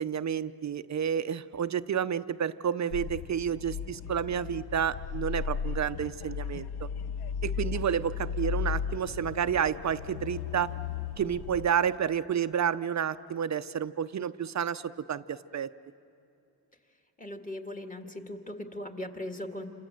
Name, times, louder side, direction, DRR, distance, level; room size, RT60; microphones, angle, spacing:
voice 1, 0.0-6.9 7.4-10.7 11.2-15.7, right 8 dB, 40° right, 13 dB, 0.6 m, -30 dB
sound 1, 2.9-11.7, left 7 dB, 65° left, 0.7 m, -35 dB
voice 2, 17.2-19.7, left 1 dB, 20° left, 3 dB, 1.9 m, -39 dB
28.5 x 26.5 x 7.6 m, 2.7 s
cardioid pair, 120°, 43 cm